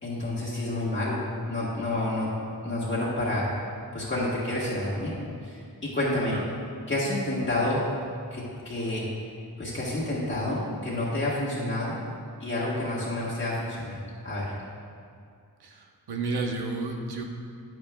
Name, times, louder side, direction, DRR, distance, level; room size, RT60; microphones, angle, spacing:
voice 1, 0.0-1.2 1.5-2.3 2.6-3.5 3.9-5.2 5.4-6.4 6.9-7.8 8.3-9.0 9.6-12.0 12.4-14.5, left 1 dB, 30° left, -8 dB, 1.4 m, -29 dB
voice 2, 15.6-17.2, right 3 dB, 80° right, 2 dB, 1.0 m, -31 dB
9.6 x 9.2 x 2.3 m, 2.3 s
wide cardioid pair, 115°, 38 cm